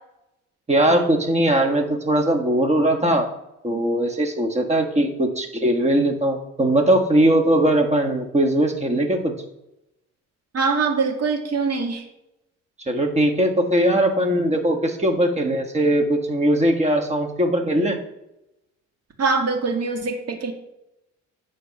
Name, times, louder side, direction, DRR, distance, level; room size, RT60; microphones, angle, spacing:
voice 1, 0.7-3.3 3.6-9.3 12.9-18.0, right 1 dB, 20° right, 3 dB, 1.6 m, -20 dB
voice 2, 10.5-12.0 19.2-20.5, right 4 dB, 55° right, 2 dB, 2.0 m, -23 dB
9.0 x 4.3 x 6.5 m, 0.87 s
cardioid pair, 90°, 30 cm